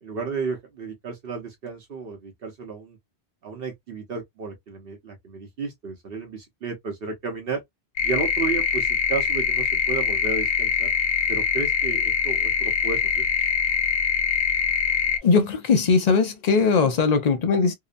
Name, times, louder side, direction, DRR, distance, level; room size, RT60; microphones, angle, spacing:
voice 1, 0.0-3.0 3.4-7.6 8.0-10.9 11.3-13.2, right 4 dB, 60° right, 0.9 m, -32 dB
sound 1, 8.0-15.2, left 7 dB, 80° left, 0.8 m, -23 dB
voice 2, 15.2-17.7, left 5 dB, 45° left, 0.6 m, -20 dB
2.8 x 2.1 x 2.4 m
omnidirectional pair, 1.1 m